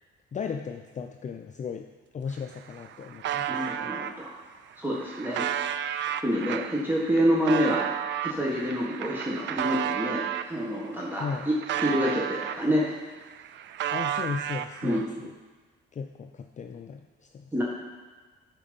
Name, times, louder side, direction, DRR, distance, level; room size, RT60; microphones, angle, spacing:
voice 1, 0.3-1.9 2.1-3.7 11.2-11.5 13.9-15.4 15.9-17.4, left 6 dB, 40° left, 4 dB, 0.5 m, -36 dB
sound 1, 2.2-2.3 2.6-4.1 4.7-10.5 11.0-12.9 13.2-15.1, right 10 dB, 65° right, 0.5 m, -32 dB
voice 2, 3.5-4.3 4.8-5.4 6.2-7.8 8.2-12.8 14.8-15.1 17.5-17.6, equal, 10° right, -5 dB, 1.6 m, -27 dB
8.9 x 5.2 x 5.4 m, 1.4 s
cardioid pair, 90°, 20 cm